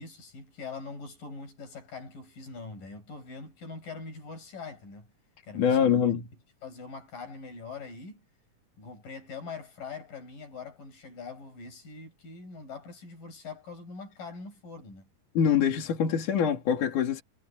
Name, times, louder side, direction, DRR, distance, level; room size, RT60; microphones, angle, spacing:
voice 1, 0.0-5.1 5.4-6.1 6.6-8.2 8.8-15.1, left 4 dB, 85° left, 9.0 m, -43 dB
voice 2, 5.6-6.2 15.4-17.2, left 8 dB, 70° left, 4.0 m, -24 dB
omnidirectional pair, 3.8 m